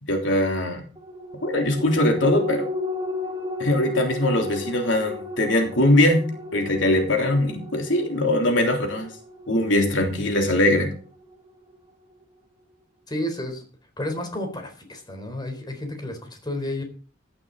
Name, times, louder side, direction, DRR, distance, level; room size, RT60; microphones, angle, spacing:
voice 1, 0.0-0.8 1.4-2.6 3.6-6.3 6.5-9.1 9.5-10.9, left 1 dB, 80° left, 3 dB, 3.3 m, -21 dB
sound 1, 1.0-11.8 12.2-12.3, left 1 dB, 20° right, 2.7 m, -35 dB
voice 2, 13.1-13.6 14.0-16.8, left 1 dB, 20° left, 5 dB, 4.0 m, -31 dB
15.0 x 11.5 x 4.1 m, 0.40 s
head